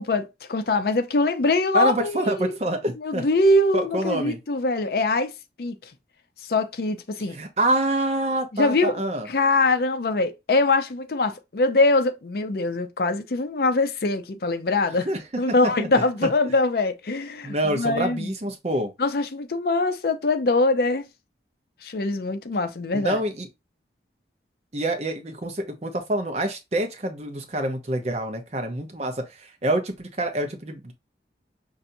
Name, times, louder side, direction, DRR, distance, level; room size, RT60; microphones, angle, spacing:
voice 1, 0.0-2.6 3.0-5.3 5.6-5.8 6.5-7.4 8.5-9.0 9.3-15.1 15.4-18.3 19.0-21.0 21.8-23.2, left 2 dB, 55° left, 0.5 m, -23 dB
voice 2, 1.7-3.3 3.7-4.4 7.3-9.3 15.0-15.2 15.8-16.0 17.4-18.9 22.9-23.5 24.7-30.9, right 1 dB, 35° right, 0.7 m, -26 dB
5.5 x 2.6 x 2.6 m
head